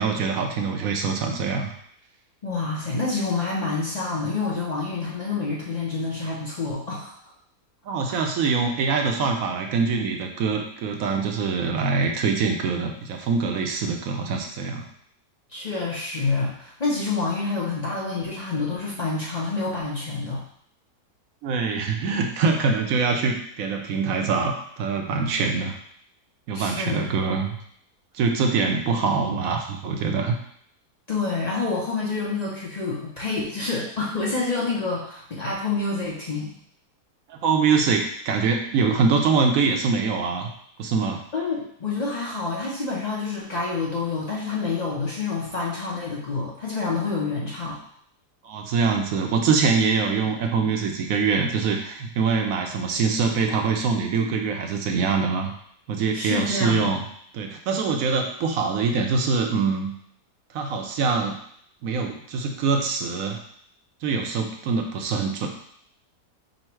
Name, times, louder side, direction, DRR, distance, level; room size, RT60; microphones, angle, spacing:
voice 1, 0.0-1.7 7.9-14.8 21.4-25.8 26.5-27.5 28.1-30.4 37.3-40.5 40.8-41.2 48.4-55.5 55.9-57.0 57.3-59.9 60.5-61.4 61.8-63.4 64.0-65.5, right 5 dB, 70° right, 3 dB, 0.9 m, -24 dB
voice 2, 2.4-7.2 8.1-8.2 15.5-20.4 26.5-27.2 31.1-36.5 41.3-47.8 56.1-56.9, left 3 dB, 80° left, -5 dB, 0.3 m, -28 dB
5.4 x 2.1 x 4.4 m, 0.65 s
omnidirectional pair, 1.8 m